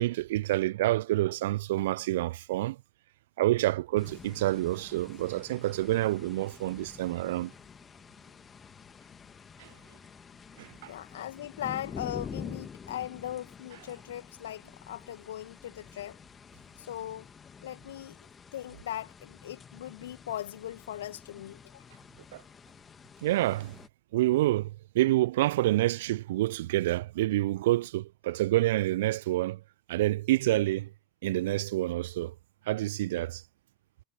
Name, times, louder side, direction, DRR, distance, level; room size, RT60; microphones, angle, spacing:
voice 1, 0.0-2.8 3.4-7.5 9.6-9.7 10.6-10.9 22.3-22.4 23.2-23.8 24.1-29.6 29.9-30.9 31.2-32.3 32.7-33.4, right 16 dB, 65° right, 0.7 m, -28 dB
sound 1, 4.0-23.9, left 6 dB, 25° left, 2.3 m, -48 dB
voice 2, 10.9-16.2 16.8-17.3 17.6-18.2 18.5-21.8, left 12 dB, 70° left, 2.2 m, -39 dB
figure-of-eight pair, 75°, 0 cm